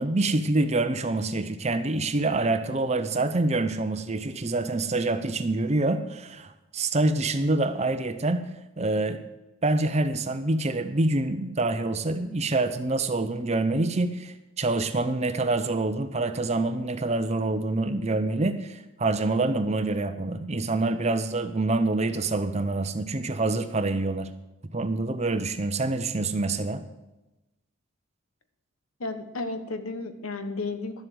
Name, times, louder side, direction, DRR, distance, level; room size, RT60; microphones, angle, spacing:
voice 1, 0.0-8.4 8.8-9.2 9.6-24.3 24.7-26.8, right 2 dB, 30° right, 10 dB, 0.6 m, -26 dB
voice 2, 29.0-31.0, left 3 dB, 80° left, 9 dB, 1.2 m, -33 dB
11.5 x 7.8 x 7.8 m, 1.0 s
head